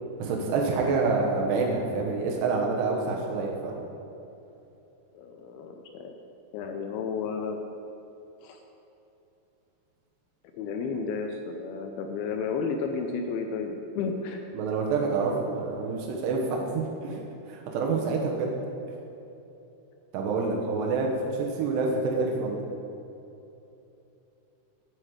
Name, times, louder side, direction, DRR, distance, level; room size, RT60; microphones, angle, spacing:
voice 1, 0.2-3.8 14.5-17.2 17.5-18.5 20.1-22.6, right 4 dB, 85° right, 0 dB, 3.1 m, -27 dB
voice 2, 5.1-6.2 6.5-7.6 8.4-8.6 10.5-14.4 20.7-20.8, left 5 dB, 80° left, 4 dB, 2.4 m, -32 dB
8.4 x 7.7 x 7.9 m, 2.9 s
omnidirectional pair, 4.7 m